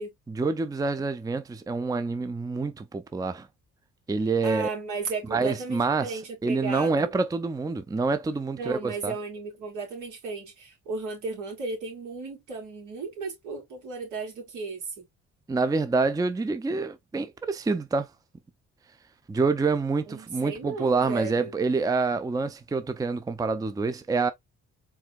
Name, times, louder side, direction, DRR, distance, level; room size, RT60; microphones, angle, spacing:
voice 1, 0.3-3.5 4.1-4.7 5.3-9.1 15.5-18.1 19.3-24.3, right 4 dB, 10° right, 0.5 m, -27 dB
voice 2, 4.4-7.1 8.5-15.0 20.1-21.5, right 4 dB, 80° right, 3.0 m, -35 dB
4.8 x 3.4 x 2.3 m
cardioid pair, 90°, 30 cm